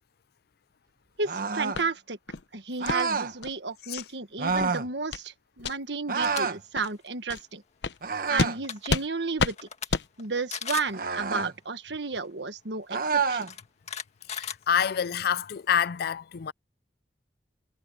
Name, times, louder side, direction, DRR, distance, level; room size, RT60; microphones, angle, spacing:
sound 1, 1.2-1.8 2.8-3.3 4.4-4.9 6.1-6.6 8.0-8.6 10.9-11.5 12.9-13.5, right 5 dB, 55° right, 1.2 m, -28 dB
voice 1, 1.2-2.2 2.5-7.6 8.3-9.7 10.2-13.5, right 4 dB, 75° right, 1.6 m, -33 dB
sound 2, 1.7-1.9 2.3-2.4 2.8-3.0 3.4-3.5 4.0-4.1 4.5-4.7 5.1-5.3 5.6-5.7 6.2-6.3 6.7-6.9 7.3-7.4 7.8-8.0 8.4-8.5 8.9-9.1 9.4-9.5 9.9-10.1, left 4 dB, 80° left, 0.9 m, -29 dB
sound 3, 6.1-6.4 6.8-7.1 8.3-8.4 8.6-8.9 9.4-9.9 10.2-10.3 10.5-11.0 12.2-12.3 13.3-15.2, left 7 dB, 40° left, 1.9 m, -37 dB
voice 2, 14.3-16.5, left 8 dB, 60° left, 0.4 m, -27 dB
head